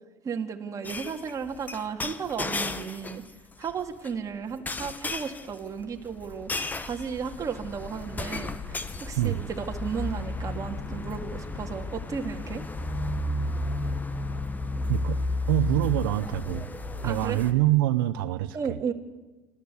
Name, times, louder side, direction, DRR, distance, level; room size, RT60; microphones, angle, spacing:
voice 1, 0.2-3.2 3.6-6.5 6.9-12.6 17.0-17.4 18.5-18.9, right 6 dB, 30° right, 4 dB, 2.2 m, -34 dB
sound 1, 0.8-3.3 3.6-4.1 4.7-17.5, left 2 dB, 15° left, 1.2 m, -33 dB
voice 2, 9.2-9.5 14.9-15.2 15.5-16.7 17.0-18.8, right 16 dB, 90° right, 10 dB, 0.9 m, -25 dB
26.0 x 13.5 x 8.5 m, 1.2 s
supercardioid pair, 120°, 11 cm